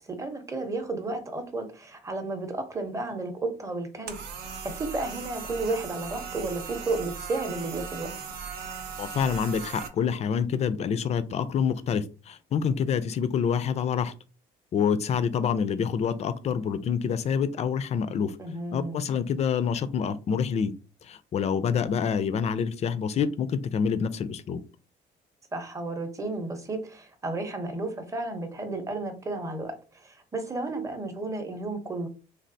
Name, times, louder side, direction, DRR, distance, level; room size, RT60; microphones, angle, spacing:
voice 1, 0.1-8.1 18.4-19.0 25.5-29.7 30.0-32.1, right 2 dB, 20° right, 5 dB, 0.7 m, -32 dB
sound 1, 4.1-9.9, right 6 dB, 70° right, 0.6 m, -38 dB
voice 2, 9.0-14.1 14.7-18.4 18.7-20.7 21.0-24.6, left 7 dB, 40° left, 13 dB, 0.4 m, -27 dB
3.3 x 2.4 x 2.6 m, 0.33 s
cardioid pair, 110°, 17 cm